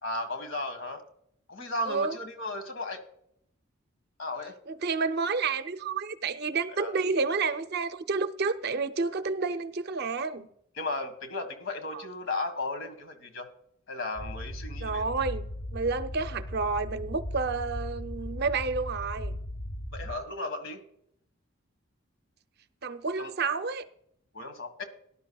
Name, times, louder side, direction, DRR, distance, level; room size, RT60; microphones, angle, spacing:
voice 1, 0.0-1.0 1.5-3.0 4.2-4.5 6.8-6.9 10.8-13.5 13.9-15.0 19.9-20.8 23.2-23.3 24.3-24.8, left 2 dB, 65° left, 1.6 m, -35 dB
voice 2, 1.9-2.2 4.7-10.5 11.9-12.0 14.8-19.4 22.8-23.8, right 4 dB, 50° right, 0.6 m, -30 dB
sound 1, 14.2-20.2, equal, 35° left, 1.0 m, -37 dB
18.0 x 11.5 x 2.3 m
head